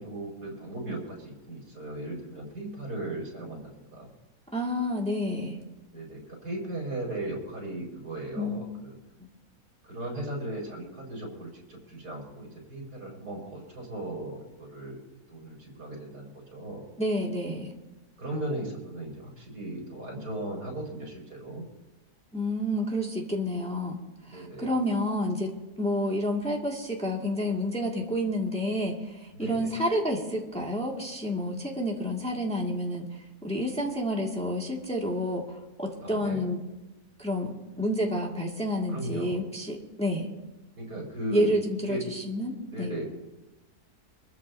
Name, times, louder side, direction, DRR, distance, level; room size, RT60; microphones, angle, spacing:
voice 1, 0.0-4.1 5.9-8.9 9.9-15.0 15.3-16.8 18.2-21.6 24.3-24.7 29.3-29.7 36.0-36.4 38.9-39.4 40.8-41.5 41.8-42.0 42.7-43.0, right 1 dB, 85° right, -3 dB, 5.5 m, -37 dB
voice 2, 4.5-5.6 8.3-8.6 17.0-17.7 22.3-24.0 24.3-25.5 25.8-33.1 33.4-36.6 37.2-40.3 41.3-42.0 42.3-42.9, equal, 5° left, -2 dB, 1.8 m, -29 dB
25.0 x 14.0 x 2.7 m, 1.1 s
omnidirectional pair, 1.6 m